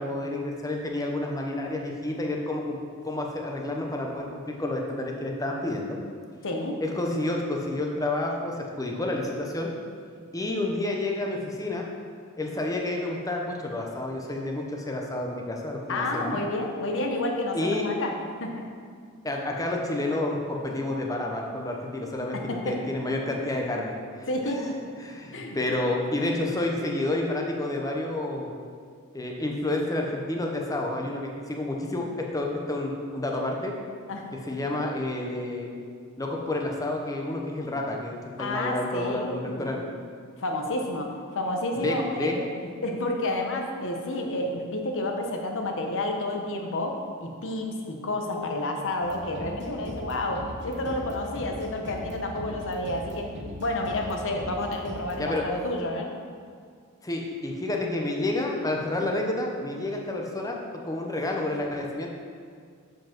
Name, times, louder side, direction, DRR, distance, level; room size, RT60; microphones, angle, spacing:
voice 1, 0.0-2.8 3.0-6.0 6.8-9.7 10.3-11.9 12.4-16.4 17.5-17.9 19.2-24.7 25.0-28.5 29.1-33.7 34.3-35.7 36.2-39.8 41.7-42.4 55.2-55.4 57.0-60.6 60.8-62.1, left 2 dB, 15° left, 0 dB, 0.8 m, -30 dB
voice 2, 6.4-6.8 15.9-18.1 18.4-18.7 22.3-22.8 24.3-24.7 25.3-25.6 34.1-34.3 38.4-39.7 40.4-42.4 42.8-53.3 53.6-56.1 59.0-59.1, left 1 dB, 60° left, 2 dB, 1.0 m, -30 dB
sound 1, 49.0-55.4, equal, 50° right, 1.1 m, -40 dB
7.0 x 5.2 x 5.9 m, 2.1 s
head